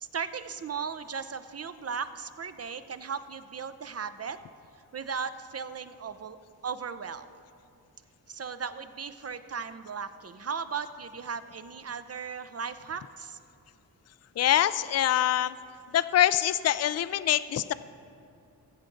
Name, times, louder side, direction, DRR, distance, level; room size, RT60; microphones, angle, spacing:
voice 1, 0.0-4.4 4.9-6.4 6.6-7.3 8.3-13.4, right 6 dB, 35° right, 11 dB, 0.6 m, -36 dB
voice 2, 14.4-15.5 15.9-17.7, left 12 dB, 40° left, 15 dB, 0.4 m, -24 dB
16.0 x 8.4 x 3.9 m, 2.5 s
cardioid pair, 50°, 40 cm